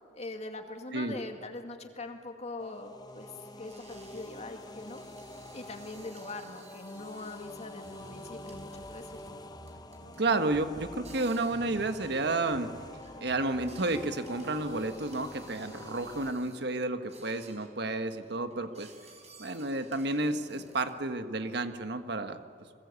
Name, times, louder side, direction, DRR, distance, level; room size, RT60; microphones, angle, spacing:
voice 1, 0.1-3.3 3.6-5.0 5.5-9.2, left 2 dB, 40° left, 5 dB, 2.3 m, -42 dB
sound 1, 2.4-2.6 3.1-9.4 9.7-10.3 11.0-16.7 17.1-17.7 18.1-21.1, right 3 dB, 40° right, 4.8 m, -55 dB
sound 2, 2.6-16.3, left 2 dB, 20° left, 1.0 m, -47 dB
sound 3, 7.8-14.2, right 1 dB, 85° right, 7.0 m, -51 dB
voice 2, 10.2-12.7 13.2-18.9 19.4-22.4, right 2 dB, 65° right, 8 dB, 1.4 m, -31 dB
29.0 x 22.0 x 8.3 m, 2.3 s
head